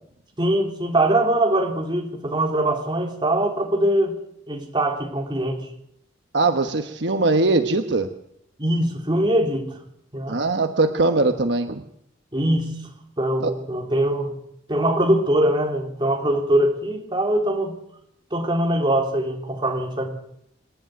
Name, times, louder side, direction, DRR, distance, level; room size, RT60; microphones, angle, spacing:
voice 1, 0.4-4.1 4.5-5.6 8.6-9.8 10.1-10.4 12.3-12.8 13.2-14.3 14.7-17.8 18.3-20.1, right 1 dB, 25° right, 1 dB, 3.7 m, -22 dB
voice 2, 6.3-8.1 10.3-11.8 13.4-13.5, right 3 dB, 65° right, 7 dB, 1.2 m, -21 dB
27.5 x 10.5 x 9.4 m, 0.75 s
head